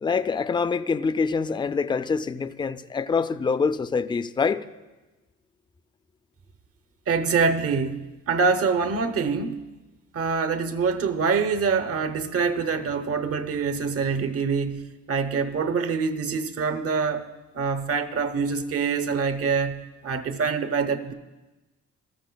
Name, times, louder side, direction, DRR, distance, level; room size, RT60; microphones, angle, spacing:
voice 1, 0.0-4.6, left 5 dB, 15° left, 0.4 m, -25 dB
voice 2, 7.1-9.6 10.1-21.1, right 5 dB, 50° right, 0.9 m, -25 dB
20.0 x 13.5 x 2.3 m
cardioid pair, 90°, 30 cm